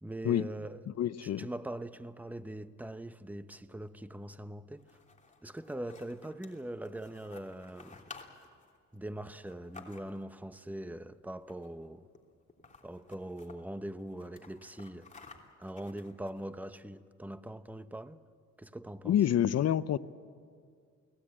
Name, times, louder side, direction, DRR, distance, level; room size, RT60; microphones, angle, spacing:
voice 1, 0.0-0.8 1.2-4.9 5.4-8.0 8.9-12.1 12.8-15.1 15.6-18.2 18.6-19.2, right 1 dB, 5° right, 0.9 m, -42 dB
voice 2, 1.0-1.5 19.1-20.0, left 10 dB, 55° left, 0.7 m, -27 dB
sound 1, 4.7-10.4 11.4-11.9 12.1-12.2 12.5-13.6 14.0-16.6, left 4 dB, 25° left, 3.1 m, -54 dB
29.0 x 18.5 x 8.8 m
cardioid pair, 90°, 30 cm